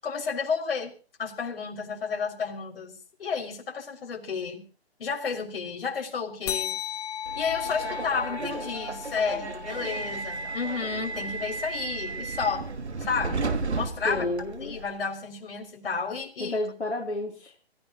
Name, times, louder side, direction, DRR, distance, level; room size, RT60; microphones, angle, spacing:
voice 1, 0.0-4.6 5.0-6.8 7.3-12.7 13.0-14.3 14.6-16.6, left 5 dB, 60° left, 1 dB, 6.4 m, -31 dB
sound 1, 6.5-11.4, left 9 dB, 35° left, 1.9 m, -36 dB
Subway metro underground, 7.3-14.9, right 4 dB, 80° right, 2.6 m, -34 dB
voice 2, 14.1-14.8 16.4-17.6, left 2 dB, 90° left, 0 dB, 3.6 m, -31 dB
26.0 x 16.5 x 3.1 m, 0.37 s
hypercardioid pair, 145°, 33 cm